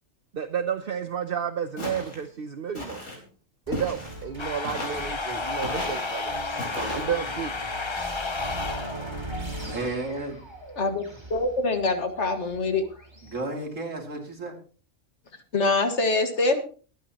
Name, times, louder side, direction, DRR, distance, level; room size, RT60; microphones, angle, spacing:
voice 1, 0.3-3.0 3.7-6.4 6.9-7.6, right 8 dB, 50° right, 10 dB, 0.9 m, -31 dB
Walk footsteps, 1.8-2.2 2.7-3.2 3.7-4.2 4.6-5.1 5.6-6.0 6.6-7.0, left 1 dB, 90° left, 4.8 m, -34 dB
sound 1, 3.7-13.4, right 1 dB, 20° right, 2.8 m, -40 dB
sound 2, 4.4-9.8, left 3 dB, 25° left, 0.8 m, -32 dB
voice 2, 9.6-10.4 13.2-14.6, right 2 dB, 80° right, 2 dB, 3.2 m, -33 dB
voice 3, 11.3-12.8 15.5-16.6, left 3 dB, 65° left, 7 dB, 2.0 m, -24 dB
23.0 x 9.4 x 2.9 m, 0.39 s
omnidirectional pair, 1.3 m